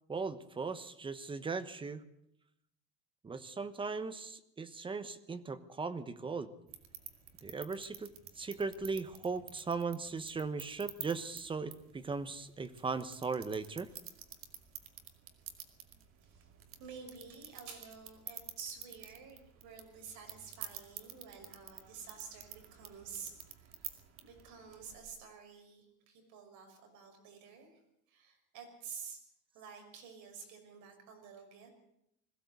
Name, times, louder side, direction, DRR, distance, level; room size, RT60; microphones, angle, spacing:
voice 1, 0.1-2.0 3.2-6.5 7.4-13.9, right 4 dB, 15° right, 12 dB, 1.1 m, -38 dB
sound 1, 6.7-25.1, right 9 dB, 40° right, 2.3 m, -51 dB
voice 2, 16.8-23.3 23.6-23.9 24.2-27.8 28.1-29.2 29.5-31.7, right 6 dB, 60° right, 4 dB, 6.1 m, -50 dB
21.0 x 16.0 x 8.1 m, 0.79 s
cardioid pair, 150°, 33 cm